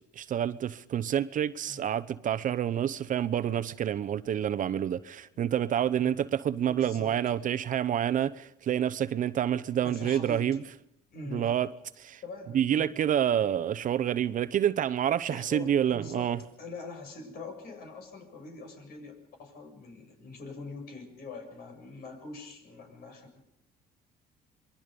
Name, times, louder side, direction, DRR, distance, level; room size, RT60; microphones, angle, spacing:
voice 1, 0.0-10.6 11.3-11.7 12.0-12.2 12.5-16.4, right 10 dB, 50° right, 0.9 m, -28 dB
voice 2, 5.9-6.3 6.6-7.1 9.2-9.3 9.8-10.6 11.1-11.5 12.2-12.9 13.4-13.5 15.3-23.4, left 3 dB, 65° left, 7.3 m, -44 dB
27.5 x 22.5 x 5.3 m
cardioid pair, 110°, 17 cm